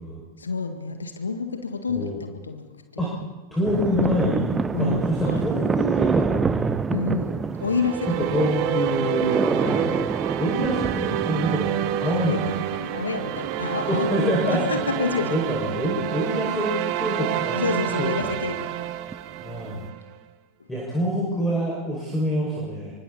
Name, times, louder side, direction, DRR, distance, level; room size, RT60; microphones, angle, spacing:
voice 1, 0.4-3.2 4.7-5.6 6.9-8.3 12.2-15.4 17.2-18.9, left 4 dB, 75° left, 7 dB, 1.8 m, -29 dB
voice 2, 3.5-6.7 8.2-12.6 13.9-14.6 15.3-17.6 18.0-18.4 19.4-19.9 20.7-22.9, equal, 5° left, -3 dB, 6.3 m, -26 dB
sound 1, 3.6-16.6 17.0-17.1 18.1-18.7 19.1-19.7, right 5 dB, 15° right, 0.6 m, -28 dB
sound 2, 7.6-20.0, right 11 dB, 45° right, 1.2 m, -28 dB
26.0 x 24.5 x 4.3 m, 1.2 s
figure-of-eight pair, 90°, 0 cm